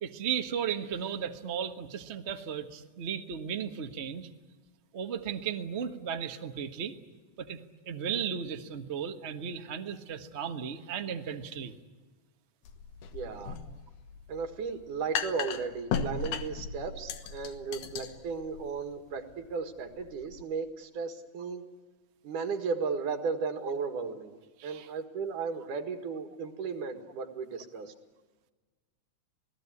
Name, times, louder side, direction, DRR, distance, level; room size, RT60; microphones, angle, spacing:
voice 1, 0.0-4.3 4.9-7.0 7.4-7.6 7.8-11.7 24.6-24.9, right 8 dB, 50° right, 6 dB, 0.7 m, -35 dB
sound 1, 12.6-20.4, left 6 dB, 85° left, 2.9 m, -37 dB
voice 2, 13.1-13.6 14.3-21.6 22.2-27.9, right 5 dB, 85° right, 7 dB, 3.3 m, -35 dB
27.5 x 18.0 x 9.8 m, 1.3 s
omnidirectional pair, 3.5 m